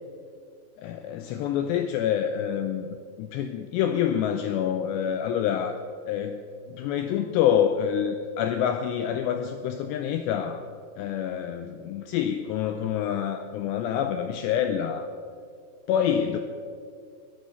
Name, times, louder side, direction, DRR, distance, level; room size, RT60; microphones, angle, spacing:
voice 1, 0.8-2.9 3.2-5.8 6.1-6.4 6.7-10.6 11.0-15.1 15.9-16.4, left 9 dB, 80° left, 7 dB, 2.5 m, -27 dB
21.5 x 8.6 x 5.5 m, 2.2 s
omnidirectional pair, 5.5 m